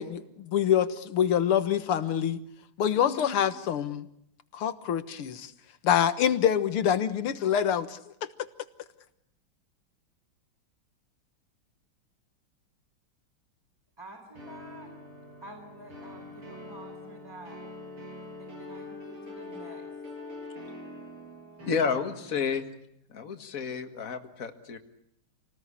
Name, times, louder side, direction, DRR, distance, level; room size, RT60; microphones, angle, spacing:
voice 1, 0.0-2.4 2.8-4.1 4.5-5.5 5.8-8.3, left 9 dB, 85° left, 12 dB, 2.2 m, -26 dB
voice 2, 3.0-3.5 14.0-14.9 15.4-17.6 18.4-19.8 21.9-22.0, right 1 dB, 10° right, 0 dB, 4.5 m, -48 dB
sound 1, 14.4-22.6, left 2 dB, 75° right, 9.2 m, -44 dB
voice 3, 21.7-22.7 23.1-24.8, left 6 dB, 40° left, 7 dB, 2.2 m, -30 dB
28.5 x 19.0 x 10.0 m, 0.74 s
omnidirectional pair, 2.4 m